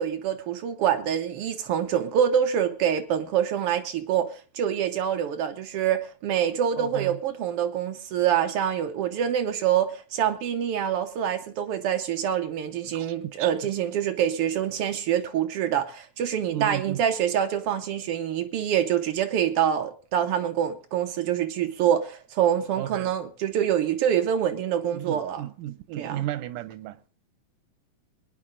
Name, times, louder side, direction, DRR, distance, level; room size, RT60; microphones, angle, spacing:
voice 1, 0.0-25.4 26.0-26.2, right 9 dB, 75° right, 1.3 m, -26 dB
voice 2, 6.8-7.2 12.9-13.5 16.5-17.1 22.8-23.1 24.9-27.1, right 13 dB, 90° right, 2.3 m, -34 dB
22.0 x 9.7 x 3.8 m
omnidirectional pair, 3.6 m